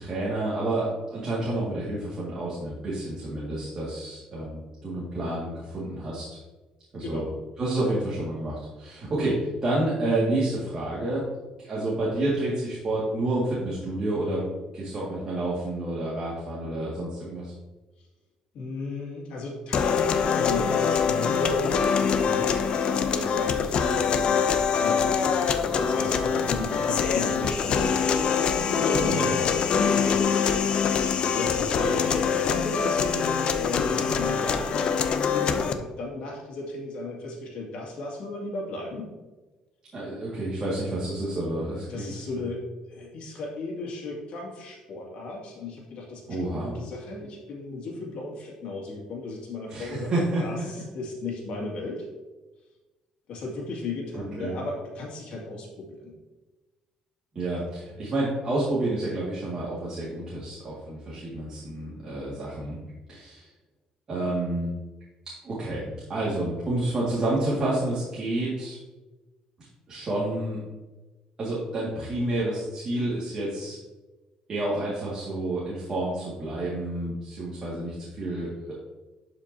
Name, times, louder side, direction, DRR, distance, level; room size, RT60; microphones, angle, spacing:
voice 1, 0.0-6.4 6.9-7.3 7.6-11.2 11.6-14.5 14.7-17.5 28.9-29.3 39.9-42.3 46.3-46.7 49.7-50.6 54.1-54.6 57.4-62.8 63.1-63.5 64.1-64.7 65.4-68.8 69.9-70.6 71.4-73.8 74.5-78.7, right 2 dB, 30° right, -7 dB, 1.9 m, -29 dB
voice 2, 7.0-7.3 18.5-34.8 35.2-39.1 41.8-50.1 50.4-52.1 53.3-56.1, left 2 dB, 65° left, -2 dB, 2.1 m, -35 dB
sound 1, 19.7-35.7, left 6 dB, 45° left, 0.5 m, -24 dB
11.5 x 5.1 x 2.8 m, 1.2 s
cardioid pair, 155°, 2 cm